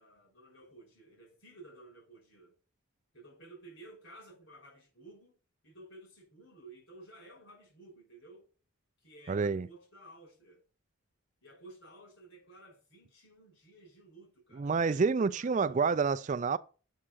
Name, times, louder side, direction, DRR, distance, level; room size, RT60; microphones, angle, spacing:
voice 1, 0.0-2.5 3.1-5.3 5.6-8.5 9.0-10.6 11.4-15.8, right 2 dB, 65° left, 5.5 m, -54 dB
voice 2, 9.3-9.7 14.6-16.6, right 5 dB, 35° right, 0.3 m, -28 dB
7.4 x 5.7 x 6.2 m
head